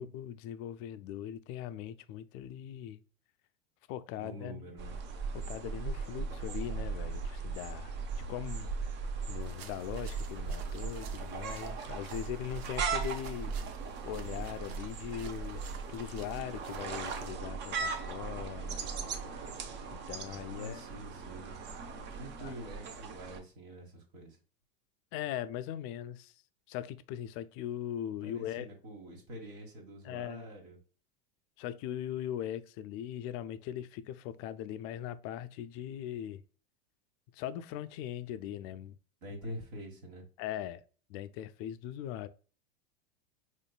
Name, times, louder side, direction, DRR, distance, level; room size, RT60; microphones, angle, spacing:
voice 1, 0.0-3.0 3.9-4.6 5.3-8.9 9.3-13.5 14.0-15.6 15.9-18.9 19.9-20.8 22.4-22.5 25.1-26.4 26.7-28.7 30.0-30.5 31.6-36.4 37.3-39.0 40.4-40.8 41.1-42.3, left 11 dB, 45° left, 0.4 m, -40 dB
voice 2, 4.2-5.0 20.2-21.6 22.1-24.4 28.2-30.8 39.2-40.2, equal, 60° right, 1.5 m, -46 dB
sound 1, 4.8-23.4, right 5 dB, 35° right, 0.7 m, -38 dB
sound 2, 9.4-17.3, right 8 dB, 80° right, 0.6 m, -54 dB
4.3 x 3.1 x 2.2 m
hypercardioid pair, 110°, 30 cm